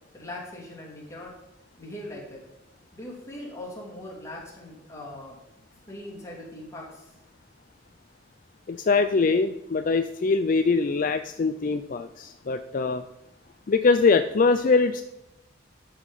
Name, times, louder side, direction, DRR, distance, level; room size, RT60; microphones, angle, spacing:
voice 1, 0.1-1.3 1.8-2.4 2.9-5.4 5.9-7.1, left 1 dB, 15° left, -4 dB, 3.0 m, -40 dB
voice 2, 8.7-13.0 13.7-15.0, left 4 dB, 45° left, 9 dB, 0.4 m, -23 dB
12.5 x 5.0 x 5.5 m, 0.93 s
head